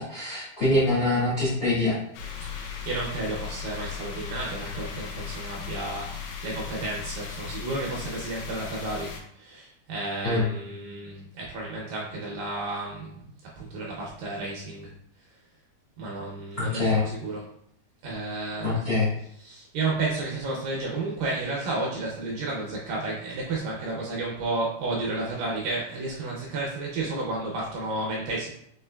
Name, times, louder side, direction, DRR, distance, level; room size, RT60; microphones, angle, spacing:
voice 1, 0.0-2.0 10.2-10.4 16.6-17.0 18.6-19.1, left 2 dB, 75° left, -8 dB, 0.8 m, -24 dB
sound 1, 2.1-9.2, left 7 dB, 90° left, 3.0 m, -37 dB
voice 2, 2.5-15.0 16.0-17.5 18.0-18.9 19.4-28.5, right 2 dB, 75° right, -3 dB, 2.1 m, -32 dB
6.4 x 3.0 x 2.2 m, 0.69 s
omnidirectional pair, 4.6 m